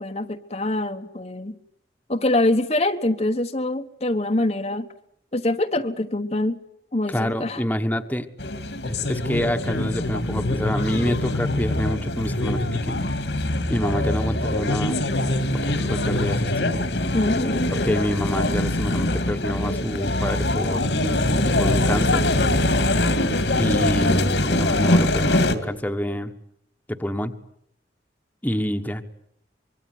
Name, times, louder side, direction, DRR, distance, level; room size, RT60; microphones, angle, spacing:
voice 1, 0.0-1.6 2.1-4.9 5.3-6.6 6.9-7.6 17.1-17.6, left 1 dB, 35° left, 6 dB, 1.2 m, -24 dB
voice 2, 7.1-8.3 8.8-13.0 13.7-15.0 15.5-16.7 17.7-20.8 21.6-22.2 23.5-26.3 27.0-27.3 28.4-29.0, equal, 10° left, 7 dB, 1.4 m, -27 dB
sound 1, 8.4-25.6, left 1 dB, 75° left, 2.5 m, -23 dB
25.5 x 23.5 x 9.6 m, 0.72 s
head